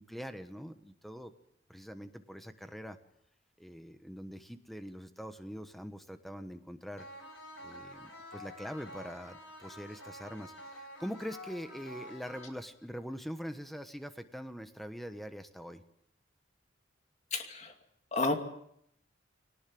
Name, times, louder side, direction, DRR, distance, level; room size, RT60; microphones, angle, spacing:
voice 1, 0.0-1.3 1.7-3.0 3.6-7.1 7.6-15.8, equal, ahead, 8 dB, 1.2 m, -43 dB
sound 1, 7.0-13.0, equal, 85° left, 6.4 m, -49 dB
voice 2, 17.3-17.7 18.1-18.3, left 3 dB, 35° left, 4 dB, 2.5 m, -31 dB
22.0 x 19.0 x 7.7 m, 0.72 s
head